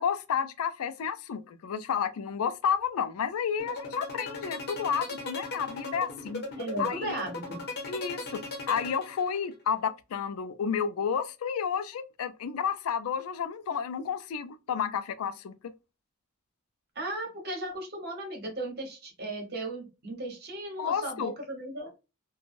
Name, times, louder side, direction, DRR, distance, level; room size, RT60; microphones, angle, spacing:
voice 1, 0.0-6.4 6.8-7.2 7.9-8.4 8.7-15.7 20.8-21.3, left 7 dB, 90° left, 0.4 m, -31 dB
sound 1, 3.6-9.5, left 2 dB, 50° left, 0.9 m, -37 dB
voice 2, 6.6-7.6 16.9-21.9, right 1 dB, 50° right, 1.1 m, -36 dB
3.1 x 2.2 x 2.5 m
head